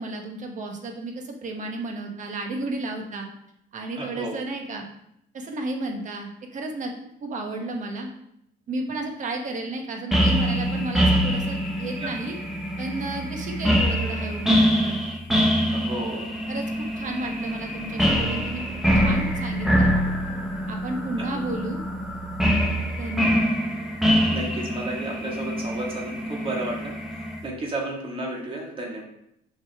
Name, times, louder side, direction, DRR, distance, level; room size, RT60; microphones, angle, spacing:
voice 1, 0.0-3.3 3.7-4.9 5.3-6.9 7.2-8.1 8.7-12.4 12.8-15.0 16.5-18.6 18.9-19.9 20.7-21.8 23.0-23.4, right 2 dB, 50° right, 3 dB, 1.3 m, -32 dB
voice 2, 4.0-4.4 12.0-12.1 15.7-16.3 21.2-21.3 24.3-27.0 27.4-29.0, right 2 dB, 30° right, -1 dB, 1.9 m, -32 dB
sound 1, 10.1-27.4, equal, ahead, 1.2 m, -24 dB
6.3 x 5.4 x 3.6 m, 0.76 s
cardioid pair, 110°, 17 cm